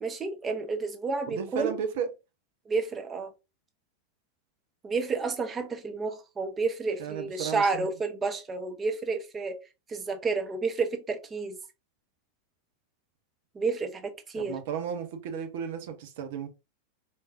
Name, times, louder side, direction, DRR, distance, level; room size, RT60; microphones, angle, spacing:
voice 1, 0.0-1.7 2.7-3.3 4.8-9.6 9.9-11.6 13.5-14.6, right 4 dB, 20° right, 0.9 m, -30 dB
voice 2, 1.3-2.1 7.0-7.9 14.4-16.5, right 7 dB, 55° right, 1.0 m, -34 dB
4.3 x 3.7 x 2.6 m
figure-of-eight pair, 90°, 0 cm